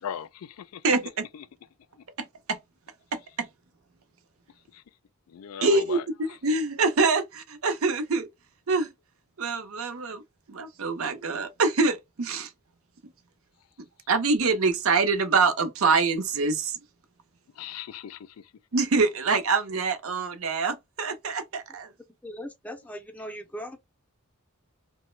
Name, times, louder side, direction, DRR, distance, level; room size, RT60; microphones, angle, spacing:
voice 1, 0.0-0.8 1.3-1.4 4.7-4.8 5.3-6.0 17.6-18.3, left 8 dB, 85° left, 0.4 m, -37 dB
voice 2, 0.8-1.2 2.2-2.6 3.1-3.5 5.6-8.3 8.7-8.9 9.4-10.2 10.5-12.5 14.1-16.8 18.7-21.9, right 4 dB, 75° right, 0.7 m, -25 dB
voice 3, 22.2-23.8, equal, 5° left, 0.5 m, -39 dB
2.9 x 2.1 x 3.1 m
head